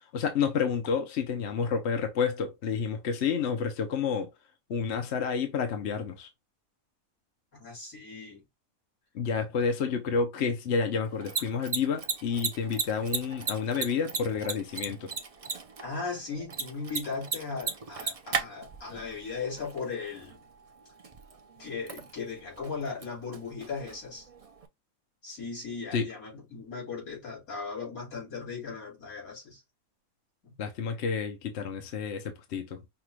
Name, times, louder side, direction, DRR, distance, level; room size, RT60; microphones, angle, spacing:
voice 1, 0.1-4.3 4.7-6.3 9.1-15.1 25.9-26.1 30.6-32.8, left 6 dB, 55° left, 0.9 m, -29 dB
voice 2, 7.5-8.4 15.8-20.4 21.6-24.3 25.2-29.6 30.4-30.5, left 4 dB, 80° left, 3.7 m, -37 dB
Mechanisms, 11.0-24.7, right 5 dB, 45° right, 0.4 m, -38 dB
5.8 x 2.4 x 3.0 m
omnidirectional pair, 1.5 m